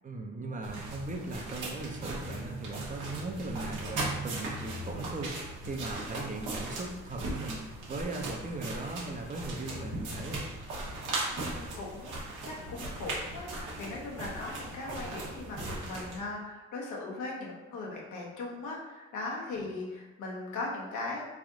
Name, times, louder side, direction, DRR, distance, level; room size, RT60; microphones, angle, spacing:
voice 1, 0.0-10.5, right 2 dB, 25° right, 2 dB, 0.6 m, -38 dB
sound 1, 0.6-16.2, right 2 dB, 85° right, 1.1 m, -38 dB
voice 2, 11.3-21.2, left 2 dB, 80° left, -2 dB, 1.0 m, -39 dB
3.4 x 2.5 x 3.7 m, 1.2 s
cardioid pair, 90°, 30 cm